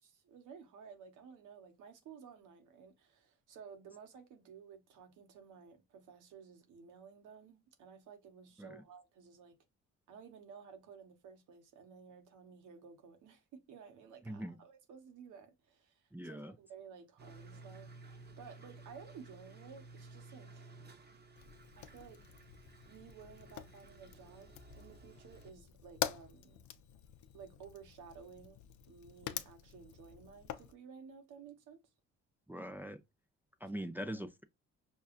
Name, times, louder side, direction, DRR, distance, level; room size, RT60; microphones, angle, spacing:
voice 1, 0.0-9.6 10.1-20.6 21.7-22.3 22.9-26.6 27.3-28.6 28.9-31.8 33.7-33.9, right 6 dB, 85° right, 1.1 m, -55 dB
voice 2, 14.3-14.6 16.1-16.6 32.5-33.0 33.6-34.4, equal, 5° right, 0.4 m, -42 dB
sound 1, 17.2-25.5, right 3 dB, 35° right, 0.9 m, -55 dB
Fire, 21.4-30.7, left 11 dB, 70° left, 0.5 m, -46 dB
5.5 x 2.3 x 2.4 m
cardioid pair, 90°, 30 cm